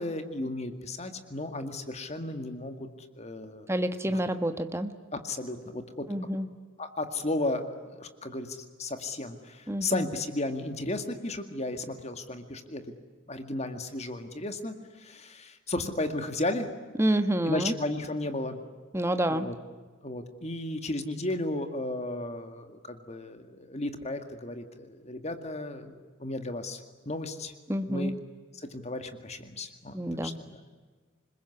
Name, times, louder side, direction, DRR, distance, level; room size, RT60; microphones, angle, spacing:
voice 1, 0.0-2.9 3.2-3.7 4.1-4.2 5.1-6.1 6.8-12.9 13.3-16.7 17.5-18.6 19.3-19.5 20.0-27.5 27.9-28.1 28.5-30.6, left 2 dB, 30° left, 8 dB, 2.0 m, -34 dB
voice 2, 3.7-4.9 6.1-6.5 9.7-10.1 17.0-17.8 18.9-19.5 27.7-28.2 29.9-30.4, right 1 dB, 10° right, 8 dB, 1.2 m, -28 dB
27.5 x 21.0 x 9.7 m, 1.5 s
head